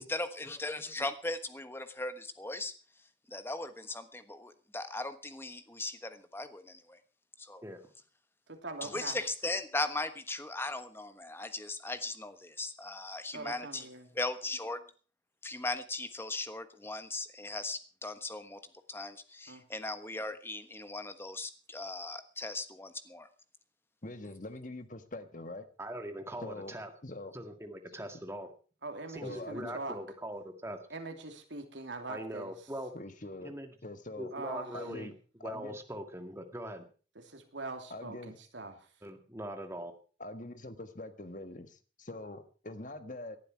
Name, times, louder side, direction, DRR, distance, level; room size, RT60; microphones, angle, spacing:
voice 1, 0.0-2.7 3.3-7.0 7.4-7.6 8.8-13.9 14.1-14.8 15.4-18.6 18.9-23.3, left 2 dB, 15° left, 10 dB, 1.3 m, -38 dB
voice 2, 8.5-9.2 13.3-14.1 19.5-19.6 28.8-30.0 30.9-32.5 34.3-34.9 37.1-38.9, right 3 dB, 75° right, 5 dB, 3.1 m, -42 dB
voice 3, 24.0-25.7 26.4-26.7 27.0-27.3 29.2-29.8 32.9-33.6 33.8-34.3 34.7-35.1 35.4-35.8 37.9-38.4 40.2-43.4, left 2 dB, 45° left, 10 dB, 1.6 m, -43 dB
voice 4, 25.8-26.9 27.3-28.5 29.1-30.8 32.1-32.9 33.4-33.7 34.2-35.1 35.4-36.9 39.0-39.9, right 1 dB, 15° right, 6 dB, 2.1 m, -41 dB
18.5 x 11.5 x 4.6 m, 0.38 s
head